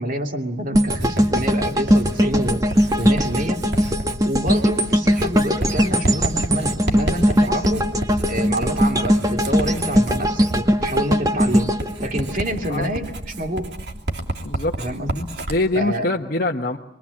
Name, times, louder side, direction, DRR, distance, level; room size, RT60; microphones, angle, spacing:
voice 1, 0.0-2.6 2.9-3.6 4.2-7.9 8.3-11.7 12.0-13.7 14.8-15.3 15.7-16.1, right 1 dB, 45° right, 4 dB, 2.5 m, -27 dB
sound 1, 0.7-12.9 13.3-13.5, equal, 20° right, 1.4 m, -20 dB
Writing, 0.9-15.6, right 1 dB, 65° right, 3.1 m, -30 dB
voice 2, 14.4-14.8 15.5-16.8, left 2 dB, 50° left, 0 dB, 1.2 m, -23 dB
27.5 x 23.0 x 8.5 m, 0.84 s
head